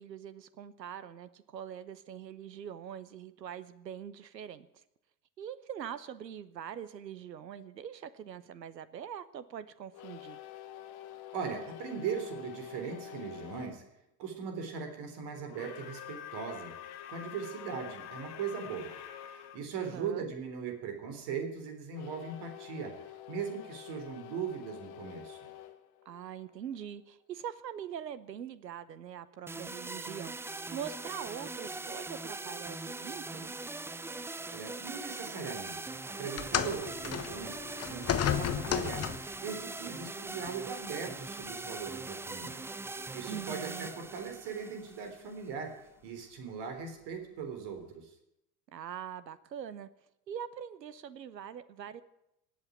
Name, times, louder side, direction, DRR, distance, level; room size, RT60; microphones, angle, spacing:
voice 1, 0.0-4.7 5.4-10.4 19.8-20.2 26.0-33.6 43.3-43.9 48.7-49.9 50.3-52.0, right 9 dB, 80° right, 15 dB, 1.0 m, -43 dB
sound 1, 9.9-13.8 15.5-19.6 21.9-26.8, left 11 dB, 50° left, 1.6 m, -47 dB
voice 2, 11.3-13.8 14.2-19.0 19.3-22.9 23.3-25.5 34.5-37.6 37.9-39.0 39.4-42.7 43.1-45.7 46.0-48.1, right 6 dB, 50° right, 7 dB, 3.8 m, -39 dB
sound 2, 29.5-45.5, right 3 dB, 5° right, 0.5 m, -41 dB
sound 3, 36.4-39.4 40.4-40.6 41.4-41.5, left 9 dB, 30° left, 1.1 m, -33 dB
17.5 x 8.6 x 9.3 m, 0.83 s
figure-of-eight pair, 70°, 50 cm